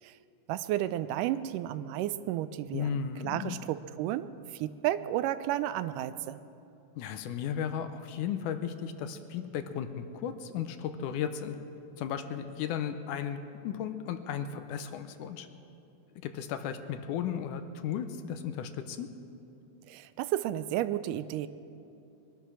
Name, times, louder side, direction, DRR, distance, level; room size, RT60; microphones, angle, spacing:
voice 1, 0.5-6.4 19.9-21.5, right 13 dB, 90° right, 13 dB, 2.1 m, -32 dB
voice 2, 2.7-3.6 7.0-11.6 12.0-15.5 16.2-19.1, left 8 dB, 80° left, 9 dB, 2.1 m, -35 dB
22.0 x 10.5 x 6.1 m, 2.7 s
omnidirectional pair, 3.7 m